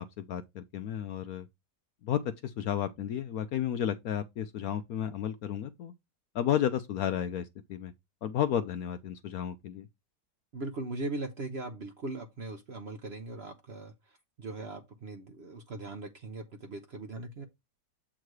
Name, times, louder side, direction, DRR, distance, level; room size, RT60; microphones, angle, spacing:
voice 1, 0.0-1.5 2.0-5.9 6.3-7.9 8.2-9.9, left 10 dB, 70° left, 0.9 m, -32 dB
voice 2, 10.5-13.9 14.4-17.4, right 2 dB, 50° right, 0.9 m, -39 dB
7.8 x 3.8 x 4.7 m
omnidirectional pair, 1.9 m